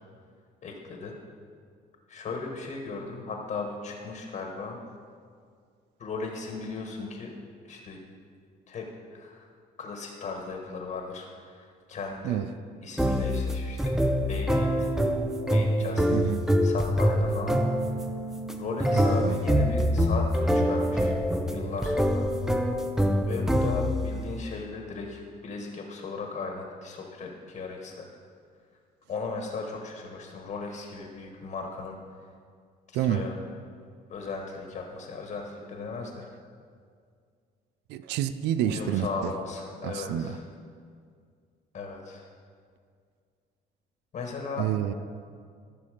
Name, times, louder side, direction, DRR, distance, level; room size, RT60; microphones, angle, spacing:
voice 1, 0.6-1.2 2.1-4.8 6.0-7.3 7.6-8.0 8.7-9.5 9.8-12.4 12.8-13.9 14.3-14.9 15.5-16.2 16.6-17.9 18.6-21.1 21.5-22.3 23.3-28.1 29.1-32.0 32.9-33.3 34.1-36.3 38.6-40.4 41.7-42.3 44.1-44.7, left 4 dB, 50° left, 2 dB, 1.4 m, -37 dB
sound 1, 13.0-24.1, equal, 5° right, 0.6 m, -25 dB
voice 2, 16.1-16.4 18.9-19.4 32.9-33.2 37.9-39.3 39.8-40.4 44.6-44.9, right 11 dB, 85° right, 12 dB, 0.5 m, -28 dB
14.0 x 5.9 x 5.0 m, 2.1 s
cardioid pair, 110°, 17 cm